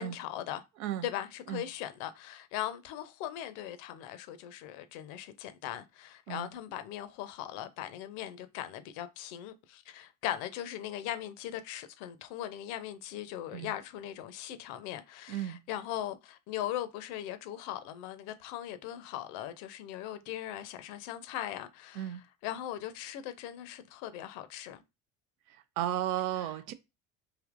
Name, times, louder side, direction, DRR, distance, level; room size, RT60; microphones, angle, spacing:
voice 1, 0.0-0.6 1.0-24.8 26.4-26.5, left 12 dB, 60° left, 0.6 m, -39 dB
voice 2, 15.3-15.6 22.0-22.2 25.5-26.7, right 12 dB, 75° right, 0.5 m, -34 dB
3.3 x 2.7 x 2.4 m
hypercardioid pair, 65°, 44 cm